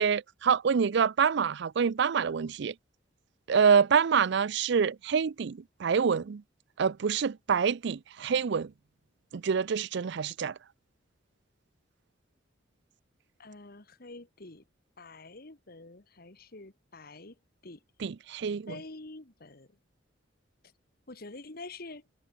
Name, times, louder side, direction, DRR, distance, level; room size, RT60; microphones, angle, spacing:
voice 1, 0.0-2.7 3.5-6.4 6.8-8.7 9.3-10.5 18.0-18.8, right 6 dB, 60° right, 0.4 m, -26 dB
voice 2, 13.4-14.6 15.0-17.3 17.6-17.8 18.7-19.7 21.1-22.0, left 2 dB, 50° left, 1.8 m, -46 dB
head